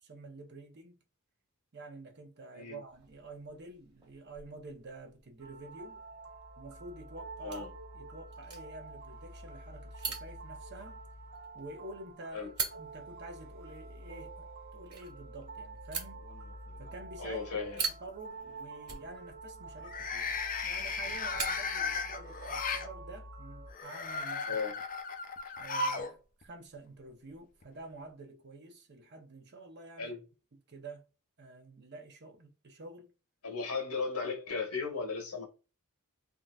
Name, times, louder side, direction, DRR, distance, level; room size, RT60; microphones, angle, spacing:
voice 1, 0.0-1.0 1.7-6.0 6.6-7.7 7.9-11.0 11.5-16.3 16.8-17.4 17.7-20.3 20.6-24.6 25.6-30.1 30.7-31.1 31.4-33.1, right 2 dB, 50° right, 0.8 m, -49 dB
sound 1, 2.9-22.5, right 5 dB, 25° right, 1.6 m, -45 dB
sound 2, 5.4-23.7, right 2 dB, 65° right, 1.0 m, -48 dB
sound 3, 16.3-16.9 17.3-17.7 19.8-22.9 23.7-26.1 26.4-26.5 27.6-27.7, left 4 dB, 40° left, 0.5 m, -36 dB
voice 2, 17.2-17.8 24.5-24.7 30.0-30.2 33.4-35.5, left 4 dB, 85° left, 1.2 m, -36 dB
3.6 x 2.7 x 2.3 m
head